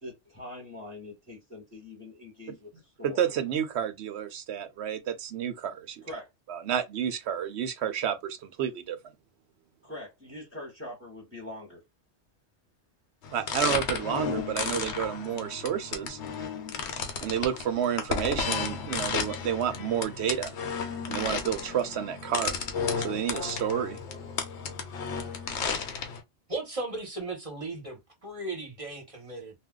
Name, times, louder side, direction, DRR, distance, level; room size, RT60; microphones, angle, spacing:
voice 1, 0.0-3.2 6.0-6.3 9.8-11.8, left 2 dB, 10° left, 1.0 m, -43 dB
voice 2, 3.0-6.0 6.5-9.0 13.3-16.2 17.2-20.5 21.1-22.6 23.0-24.0, right 9 dB, 80° right, 0.9 m, -30 dB
sound 1, 13.2-26.2, left 6 dB, 90° left, 1.0 m, -33 dB
voice 3, 26.5-29.5, right 2 dB, 35° right, 1.0 m, -36 dB
2.6 x 2.2 x 3.6 m
omnidirectional pair, 1.1 m